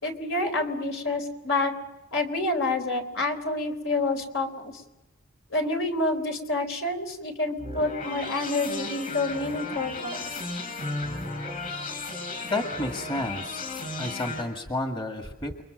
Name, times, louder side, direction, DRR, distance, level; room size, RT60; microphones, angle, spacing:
voice 1, 0.0-1.7 2.1-4.7 5.5-10.3, left 2 dB, 65° left, 5 dB, 4.0 m, -28 dB
sound 1, 7.6-14.4, left 3 dB, 40° left, 7.4 m, -34 dB
voice 2, 12.4-15.6, left 2 dB, 25° left, 3 dB, 2.0 m, -31 dB
30.0 x 23.0 x 6.5 m, 1.0 s
head